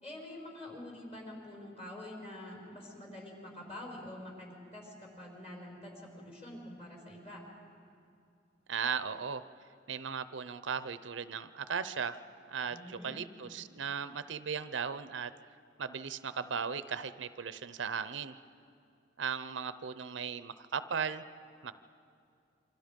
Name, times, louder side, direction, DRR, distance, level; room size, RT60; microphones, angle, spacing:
voice 1, 0.0-7.4 12.7-13.3, left 1 dB, 30° left, -1 dB, 5.1 m, -46 dB
voice 2, 8.7-9.4 9.9-12.2 12.5-15.3 15.8-18.3 19.2-21.3 21.6-21.7, right 6 dB, 75° right, 13 dB, 0.6 m, -37 dB
27.5 x 25.0 x 5.2 m, 2.5 s
head